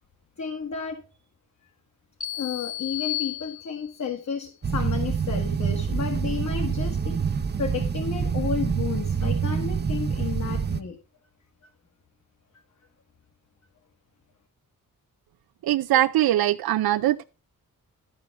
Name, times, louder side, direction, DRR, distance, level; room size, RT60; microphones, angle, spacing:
voice 1, 0.4-1.0 2.3-11.0 11.6-11.7, left 6 dB, 55° left, 1.7 m, -32 dB
sound 1, 2.2-4.1, left 15 dB, 25° left, 1.3 m, -33 dB
sound 2, 4.6-10.8, right 6 dB, 30° right, 0.7 m, -26 dB
voice 2, 15.6-17.2, right 13 dB, 85° right, 0.6 m, -22 dB
12.5 x 6.3 x 4.7 m
wide cardioid pair, 145°, 36 cm